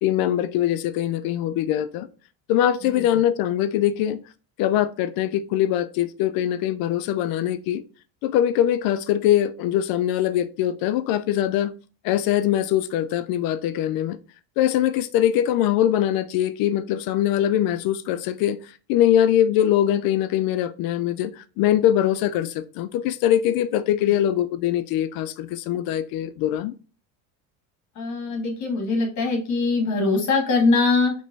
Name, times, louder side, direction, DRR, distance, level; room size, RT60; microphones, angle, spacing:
voice 1, 0.0-2.1 2.5-4.2 4.6-7.8 8.2-11.7 12.0-14.2 14.6-26.7, left 11 dB, 65° left, 0.5 m, -22 dB
voice 2, 28.0-31.1, left 3 dB, 45° left, 1.7 m, -22 dB
5.2 x 3.1 x 2.6 m
cardioid pair, 120°, 39 cm